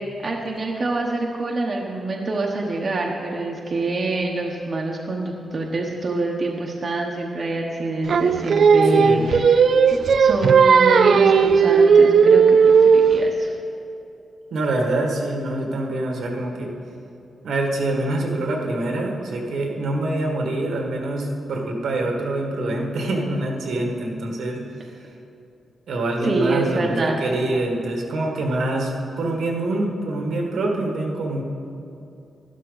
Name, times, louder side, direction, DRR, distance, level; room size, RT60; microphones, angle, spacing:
voice 1, 0.2-9.6 10.2-13.5 26.2-27.2, right 2 dB, 40° right, -1 dB, 1.0 m, -26 dB
Singing, 8.1-13.3, right 6 dB, 55° right, 0.4 m, -15 dB
voice 2, 8.8-9.3 14.5-16.7 17.4-24.6 25.9-28.9 29.2-31.4, right 2 dB, 80° right, 0 dB, 1.7 m, -25 dB
12.5 x 12.0 x 4.0 m, 2.7 s
wide cardioid pair, 150°, 0 cm